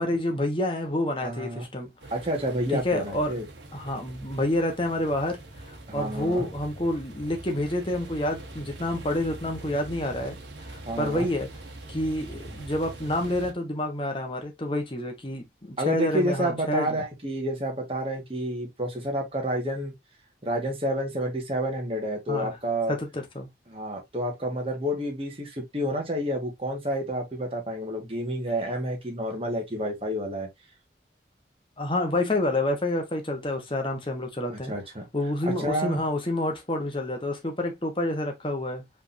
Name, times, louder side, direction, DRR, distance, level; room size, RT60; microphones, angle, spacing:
voice 1, 0.0-1.9 2.8-3.3 3.7-5.4 5.7-10.4 10.6-11.5 11.9-16.9 22.3-22.6 22.9-23.5 31.8-34.7 35.1-38.8, left 1 dB, 30° left, 1.2 m, -28 dB
voice 2, 1.2-1.7 2.1-3.5 5.9-6.5 10.8-11.3 15.8-19.9 20.4-23.0 23.7-30.5 34.5-35.1 35.6-36.0, equal, 30° right, 1.7 m, -29 dB
sound 1, 2.0-13.5, right 2 dB, 85° right, 1.2 m, -43 dB
5.2 x 3.6 x 2.7 m
head